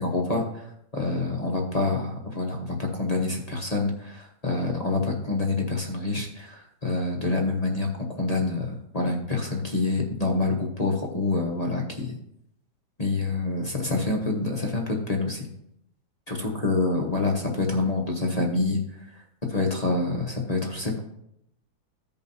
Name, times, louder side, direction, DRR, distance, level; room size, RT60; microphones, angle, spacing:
voice 1, 0.0-0.7 0.9-12.1 13.0-15.5 16.3-19.2 19.5-21.0, left 3 dB, 30° left, -1 dB, 0.9 m, -27 dB
15.0 x 5.4 x 2.7 m, 0.76 s
omnidirectional pair, 1.8 m